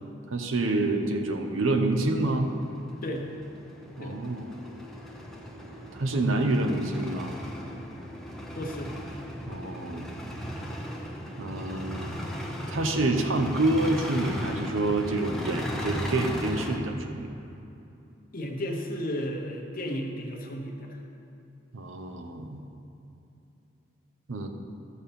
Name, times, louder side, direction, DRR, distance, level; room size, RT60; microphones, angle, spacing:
voice 1, 0.3-2.5 4.0-4.5 5.9-7.3 9.5-10.1 11.4-12.2 12.7-17.3 21.7-22.6 24.3-24.5, right 2 dB, 80° right, 4 dB, 0.9 m, -27 dB
sound 1, 2.2-16.8, equal, ahead, 0.8 m, -37 dB
voice 2, 8.5-8.9 18.3-21.0, equal, 45° left, 1 dB, 1.0 m, -33 dB
12.5 x 4.3 x 6.9 m, 2.8 s
head